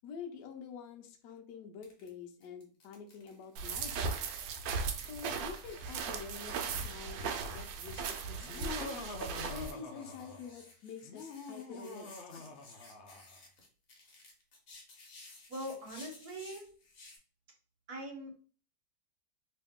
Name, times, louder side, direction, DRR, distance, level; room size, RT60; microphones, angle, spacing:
voice 1, 0.0-4.4 5.1-8.9 9.5-12.6, left 6 dB, 70° left, 4 dB, 1.2 m, -47 dB
sound 1, 1.8-2.1 2.4-17.2, left 3 dB, 55° left, 1.3 m, -57 dB
sound 2, 3.6-9.7, right 5 dB, 85° right, 1.3 m, -37 dB
Laughter, 8.4-10.6 11.0-13.4, left 3 dB, 90° left, 0.6 m, -45 dB
voice 2, 15.5-16.7 17.9-18.3, right 1 dB, 60° right, 1 dB, 1.4 m, -42 dB
3.0 x 2.9 x 3.5 m, 0.41 s
omnidirectional pair, 2.0 m